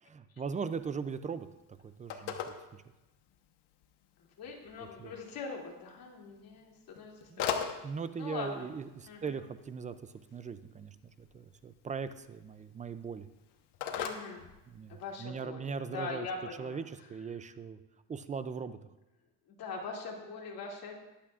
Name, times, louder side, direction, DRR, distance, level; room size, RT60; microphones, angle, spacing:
voice 1, 0.0-1.5 1.8-2.8 4.8-5.1 7.3-7.5 7.8-9.9 10.3-13.3 14.7-16.3 16.6-17.8 18.1-18.8, right 5 dB, 20° right, 12 dB, 0.3 m, -39 dB
Telephone, 0.7-15.2, left 8 dB, 70° left, 1.2 m, -44 dB
voice 2, 4.4-7.8 8.2-8.7 9.1-9.3 13.9-14.4 14.9-15.6 15.9-16.8 19.6-20.9, left 4 dB, 55° left, -2 dB, 2.8 m, -42 dB
21.0 x 8.4 x 2.4 m, 1.0 s
cardioid pair, 130°, 42 cm